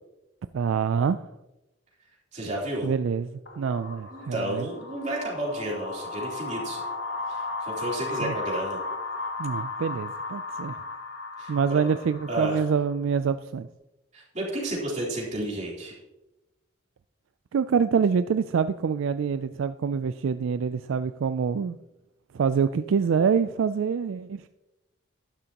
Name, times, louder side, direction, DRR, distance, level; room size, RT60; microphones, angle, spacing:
voice 1, 0.5-1.3 2.8-3.3 3.6-4.7 8.2-8.3 9.4-10.8 11.5-13.7 17.5-21.8 22.3-24.5, right 6 dB, 65° right, 11 dB, 0.3 m, -26 dB
voice 2, 2.3-2.9 4.1-6.8 7.3-8.8 11.4-11.8 12.3-12.7 14.1-16.0, right 1 dB, 35° right, -4 dB, 3.5 m, -32 dB
sound 1, 3.5-12.9, left 3 dB, 65° left, 2.1 m, -35 dB
12.0 x 11.0 x 2.9 m, 0.98 s
head